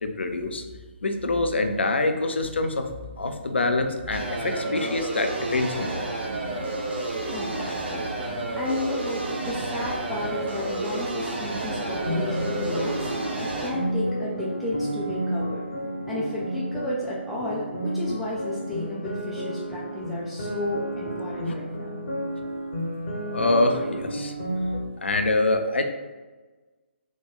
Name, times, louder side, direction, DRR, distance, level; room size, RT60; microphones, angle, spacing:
voice 1, 0.0-0.6 1.0-2.9 3.2-6.1 21.5-21.6 23.3-24.3 25.0-25.8, left 2 dB, 65° left, 6 dB, 0.4 m, -25 dB
sound 1, 4.1-13.7, right 2 dB, 60° right, 0.9 m, -30 dB
sound 2, 6.4-13.1, right 1 dB, 85° right, 1.0 m, -44 dB
voice 2, 7.3-8.1 8.6-13.1 13.4-15.6 16.1-22.0, left 1 dB, ahead, -8 dB, 0.3 m, -33 dB
sound 3, 11.7-24.8, right 1 dB, 45° left, 0.7 m, -31 dB
3.0 x 2.2 x 3.8 m, 1.3 s
figure-of-eight pair, 140°, 7 cm